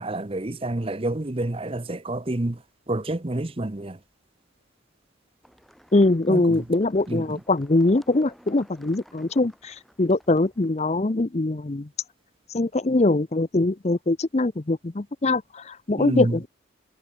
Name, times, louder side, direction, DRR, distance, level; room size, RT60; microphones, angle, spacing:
voice 1, 0.0-2.6 2.9-4.0 6.3-6.6 7.1-7.4 16.0-16.4, right 1 dB, 25° right, 0.8 m, -28 dB
sound 1, 5.4-10.9, equal, ahead, 7.5 m, -55 dB
voice 2, 5.9-11.9 12.5-16.5, left 2 dB, 30° left, 0.6 m, -22 dB
head